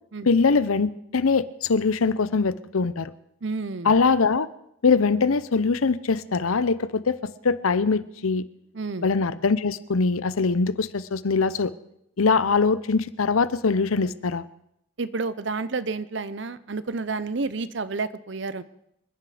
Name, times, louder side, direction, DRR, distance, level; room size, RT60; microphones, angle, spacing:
voice 1, 0.2-3.1 3.8-4.5 4.8-8.4 9.0-11.7 12.2-14.4, left 4 dB, 85° left, 16 dB, 0.7 m, -22 dB
voice 2, 3.4-3.9 8.7-9.1 15.0-18.6, right 3 dB, 60° right, 15 dB, 0.7 m, -30 dB
27.0 x 10.0 x 5.0 m, 0.76 s
head